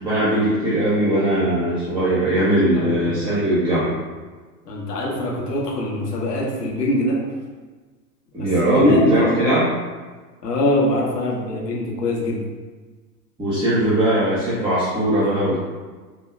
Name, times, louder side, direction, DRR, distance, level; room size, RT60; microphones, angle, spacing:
voice 1, 0.0-3.9 8.3-9.7 13.4-15.6, right 1 dB, 10° right, -13 dB, 1.2 m, -20 dB
voice 2, 2.7-3.2 4.6-7.2 8.4-8.5 8.7-9.4 10.4-12.4 15.2-15.5, left 1 dB, 75° left, -3 dB, 1.1 m, -23 dB
4.1 x 2.7 x 2.4 m, 1.4 s
figure-of-eight pair, 95°, 48 cm